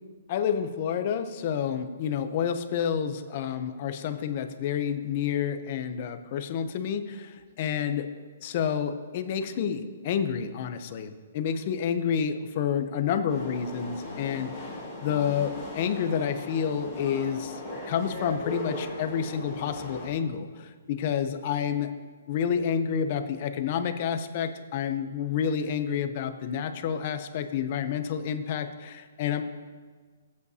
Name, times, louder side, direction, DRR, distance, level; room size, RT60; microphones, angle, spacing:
voice 1, 0.3-8.1 8.4-17.6 17.9-21.9 22.3-29.4, left 8 dB, 30° left, 9 dB, 0.6 m, -29 dB
sound 1, 13.3-20.1, left 1 dB, 5° right, 2.8 m, -38 dB
19.5 x 8.4 x 2.8 m, 1.5 s
hypercardioid pair, 175°, 0 cm